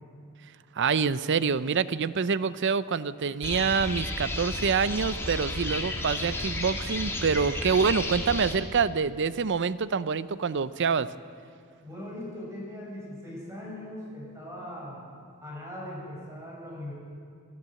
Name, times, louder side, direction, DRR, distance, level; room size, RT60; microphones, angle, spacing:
voice 1, 0.8-11.1, right 5 dB, 55° right, 16 dB, 0.6 m, -26 dB
sound 1, 3.4-8.5, left 1 dB, 10° left, 2.2 m, -32 dB
voice 2, 11.8-15.0 15.4-16.9, left 1 dB, 15° right, -5 dB, 7.1 m, -40 dB
26.5 x 13.0 x 7.7 m, 2.3 s
head